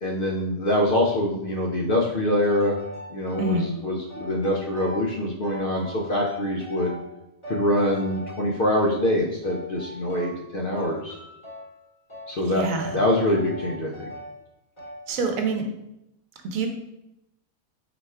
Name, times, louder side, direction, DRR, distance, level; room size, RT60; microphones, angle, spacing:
voice 1, 0.0-2.8 3.1-7.0 7.5-11.1 12.3-12.6 12.9-14.1, left 1 dB, 55° left, -1 dB, 0.6 m, -24 dB
sound 1, 2.4-3.7 4.1-5.2 5.4-7.1 7.4-9.0 9.4-10.5 10.8-11.7 12.1-12.4 12.8-14.3 14.8-15.1, equal, 25° left, 1.1 m, -40 dB
voice 2, 3.4-3.7 12.5-13.0 15.1-15.7 16.4-16.7, right 3 dB, 80° right, 4 dB, 1.1 m, -26 dB
4.1 x 2.3 x 4.3 m, 0.85 s
omnidirectional pair, 1.4 m